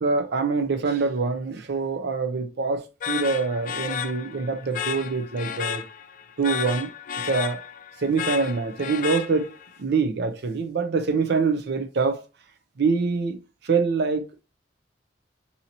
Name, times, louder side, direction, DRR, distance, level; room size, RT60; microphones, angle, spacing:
voice 1, 0.0-5.8 6.4-6.9 7.2-7.6 8.0-12.2 12.8-13.4 13.6-14.4, right 4 dB, 60° right, 0.5 m, -25 dB
sound 1, 3.0-9.7, left 8 dB, 45° left, 0.3 m, -33 dB
2.9 x 2.7 x 4.0 m
head